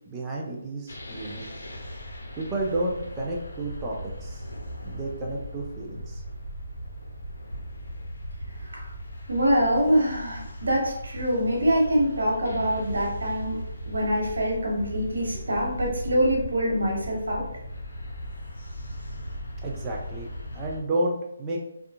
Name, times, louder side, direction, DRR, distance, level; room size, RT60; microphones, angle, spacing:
voice 1, 0.1-1.6 2.4-4.4 4.8-6.2 15.3-15.4 19.6-21.6, right 1 dB, 15° right, -2 dB, 0.4 m, -31 dB
sound 1, 0.9-20.8, equal, 80° left, 0.7 m, -38 dB
voice 2, 9.3-13.6 13.8-17.5, equal, 80° right, -1 dB, 1.0 m, -25 dB
2.7 x 2.3 x 2.4 m, 0.79 s
hypercardioid pair, 160°, 0 cm